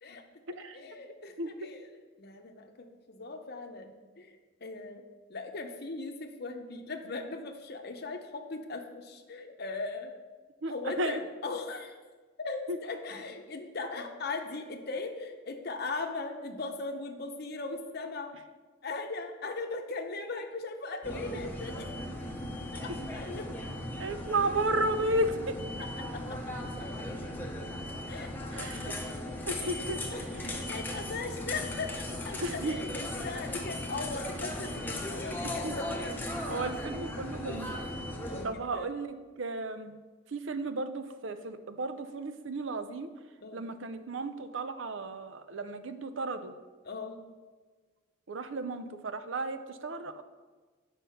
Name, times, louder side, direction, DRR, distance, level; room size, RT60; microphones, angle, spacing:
voice 1, 0.7-1.9 2.2-4.4 4.6-5.0 5.3-10.1 10.7-12.0 12.4-18.3 18.8-21.9 22.7-23.5 25.8-26.4 26.8-27.1 28.1-28.3 28.8-28.9 29.5-36.1 37.5-37.6 38.3-38.9 43.4-43.6 46.8-47.2, left 3 dB, 50° left, 4 dB, 0.8 m, -39 dB
voice 2, 10.6-11.2 12.7-12.8 24.0-25.6 28.5-29.0 29.5-30.0 32.4-32.8 35.6-35.8 36.5-37.8 38.4-39.9 40.3-43.1 43.5-46.5 48.3-50.2, right 2 dB, 60° right, 10 dB, 0.6 m, -33 dB
sound 1, 21.0-38.5, left 1 dB, 10° left, 0.9 m, -37 dB
8.2 x 5.5 x 5.7 m, 1.4 s
head